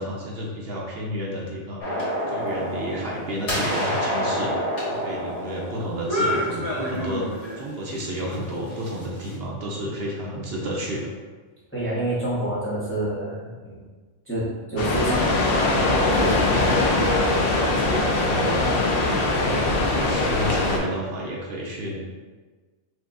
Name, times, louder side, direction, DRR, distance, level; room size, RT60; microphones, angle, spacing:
voice 1, 0.0-4.5 4.9-11.1 19.4-22.0, equal, 60° right, -3 dB, 0.8 m, -31 dB
sound 1, 1.8-7.6 8.0-9.3, equal, 80° left, 1.6 m, -28 dB
voice 2, 11.7-13.8 14.3-18.3, right 1 dB, 15° left, -8 dB, 0.7 m, -28 dB
sound 2, 14.8-20.8, left 2 dB, 60° left, 0.8 m, -21 dB
6.0 x 2.2 x 2.5 m, 1.4 s
omnidirectional pair, 1.2 m